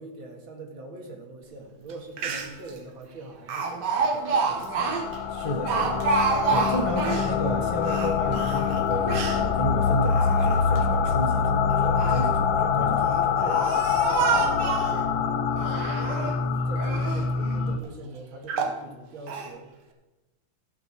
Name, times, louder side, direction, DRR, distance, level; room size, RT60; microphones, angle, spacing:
voice 1, 0.0-5.1 13.4-16.4 16.7-19.7, right 2 dB, 90° right, 1 dB, 2.6 m, -42 dB
Speech, 1.9-2.0 2.2-2.7 3.5-7.3 7.8-9.4 10.0-10.8 11.7-12.3 13.0-15.0 15.6-16.4 16.8-17.3 17.8-17.9 18.5-18.8 19.3-19.5, right 5 dB, 65° right, 1.5 m, -28 dB
sound 1, 4.2-17.8, left 6 dB, 80° left, 1.5 m, -25 dB
voice 2, 5.3-6.0 6.5-13.7 14.3-14.6, equal, 35° left, 2 dB, 0.5 m, -32 dB
15.0 x 6.0 x 6.0 m, 1.1 s
omnidirectional pair, 2.1 m